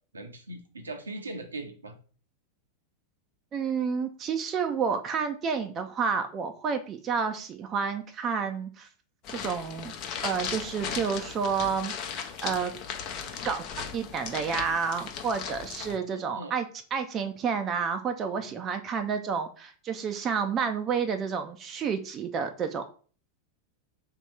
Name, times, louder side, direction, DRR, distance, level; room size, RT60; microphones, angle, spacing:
voice 1, 0.1-1.9 12.4-12.7 15.8-16.5, right 2 dB, 75° right, 6 dB, 0.7 m, -40 dB
voice 2, 3.5-8.9 9.3-9.9 10.2-12.7 13.4-13.6 13.9-22.8, right 6 dB, 30° right, 7 dB, 0.4 m, -30 dB
sound 1, 9.2-16.0, left 7 dB, 40° left, 0.7 m, -37 dB
3.3 x 2.8 x 4.6 m, 0.40 s
figure-of-eight pair, 90°, 0 cm